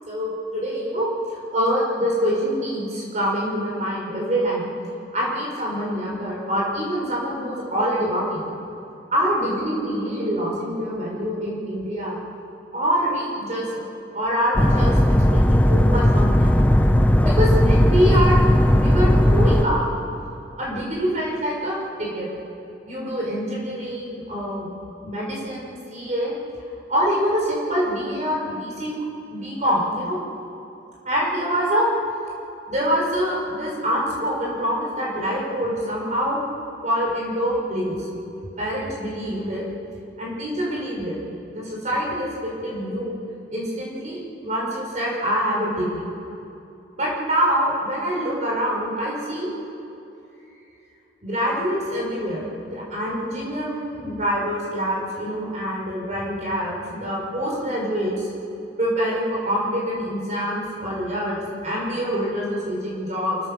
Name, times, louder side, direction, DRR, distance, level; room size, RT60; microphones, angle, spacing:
voice 1, 0.0-4.7 5.1-8.5 9.1-12.2 12.7-13.9 14.1-16.6 17.2-19.9 20.6-22.3 22.9-24.7 25.0-26.3 26.9-28.9 29.3-30.2 31.0-31.9 32.7-36.4 36.8-38.1 38.6-39.6 40.2-41.2 41.5-43.2 43.5-46.0 47.0-49.5 51.2-58.3 58.8-63.5, equal, 40° right, -3 dB, 5.7 m, -25 dB
sound 1, 14.6-19.7, left 1 dB, 10° left, 0.8 m, -16 dB
28.0 x 16.0 x 6.9 m, 2.8 s
head